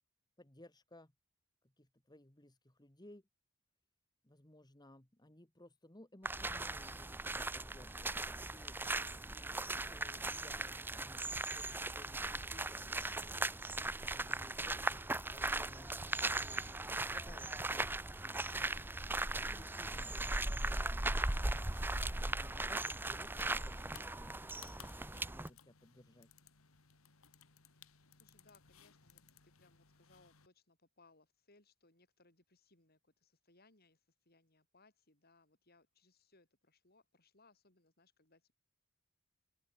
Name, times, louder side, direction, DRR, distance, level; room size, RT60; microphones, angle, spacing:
voice 1, 0.4-1.1 1.6-3.2 4.2-13.7 14.0-21.1 22.1-26.3, left 1 dB, 20° left, 2.0 m, -60 dB
sound 1, 6.2-25.5, right 2 dB, 10° right, 0.7 m, -38 dB
sound 2, 21.4-30.5, left 7 dB, 75° left, 2.3 m, -62 dB
voice 2, 27.8-38.5, left 3 dB, 45° left, 6.5 m, -69 dB
open air
head